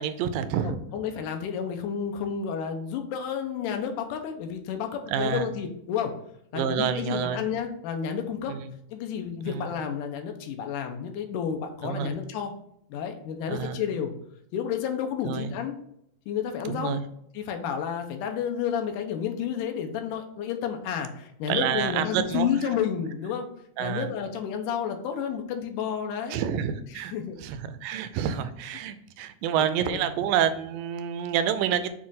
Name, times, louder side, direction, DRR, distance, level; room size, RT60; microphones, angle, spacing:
voice 1, 0.0-0.8 5.1-5.5 6.5-7.4 8.5-8.6 9.5-9.7 11.8-12.2 13.5-13.8 15.3-15.5 16.7-17.0 21.5-22.5 23.8-24.1 26.3-27.1 27.4-31.9, right 8 dB, 80° right, 10 dB, 2.1 m, -28 dB
voice 2, 0.6-6.1 6.5-8.5 8.9-12.5 12.9-14.1 14.5-15.8 16.3-17.0 17.3-23.5 23.8-26.4 26.9-27.4 29.6-30.1, left 8 dB, 75° left, 4 dB, 2.2 m, -31 dB
7.4 x 2.5 x 5.5 m, 0.74 s
omnidirectional pair, 4.0 m